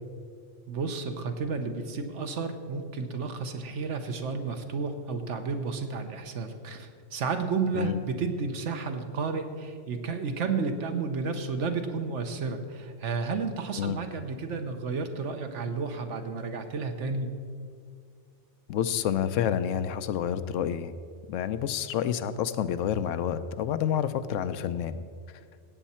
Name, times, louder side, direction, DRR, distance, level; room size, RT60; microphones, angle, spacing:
voice 1, 0.7-17.3, right 4 dB, 75° right, 7 dB, 1.2 m, -32 dB
voice 2, 18.7-20.9 21.3-25.0, left 9 dB, 90° left, 12 dB, 1.0 m, -29 dB
16.5 x 8.2 x 4.3 m, 2.1 s
omnidirectional pair, 1.3 m